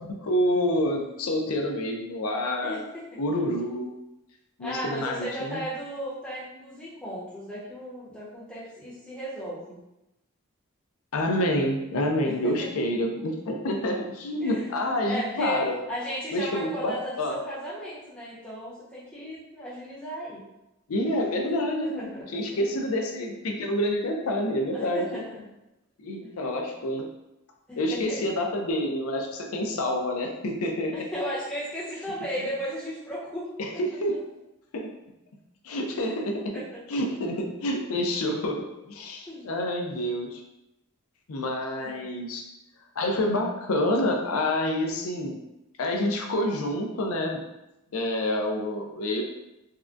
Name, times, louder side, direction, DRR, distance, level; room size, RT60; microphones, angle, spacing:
voice 1, 0.0-2.8 3.2-3.9 4.6-5.6 11.1-15.7 16.3-17.4 20.9-22.0 22.3-25.2 26.0-27.1 27.8-31.0 33.6-34.2 34.7-34.9 35.6-36.4 36.9-40.4 41.3-42.4 43.0-45.4 45.8-47.4 47.9-49.2, left 1 dB, 85° left, 2 dB, 0.5 m, -28 dB
voice 2, 2.6-3.2 4.6-9.8 12.2-12.7 14.4-14.6 15.0-15.6 15.9-20.4 21.8-22.3 24.7-25.4 26.2-26.3 27.7-28.3 30.9-33.5 36.5-36.6 39.3-39.4 41.8-42.1, equal, 5° left, -8 dB, 0.8 m, -35 dB
3.6 x 2.2 x 2.4 m, 0.93 s
head